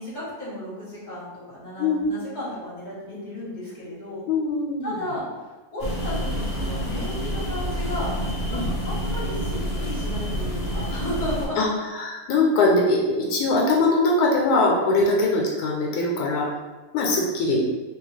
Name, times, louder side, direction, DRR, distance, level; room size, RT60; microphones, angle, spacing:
voice 1, 0.0-4.2 4.8-5.3 5.7-8.2 8.5-11.6 14.9-15.0, left 1 dB, 30° left, -8 dB, 1.3 m, -34 dB
voice 2, 4.3-4.9 8.5-8.7 11.6-11.7 12.0-16.5 16.9-17.6, left 2 dB, 85° left, -2 dB, 1.1 m, -21 dB
sound 1, 5.8-11.5, equal, 50° left, 0.8 m, -28 dB
3.1 x 2.3 x 3.1 m, 1.2 s
omnidirectional pair, 1.6 m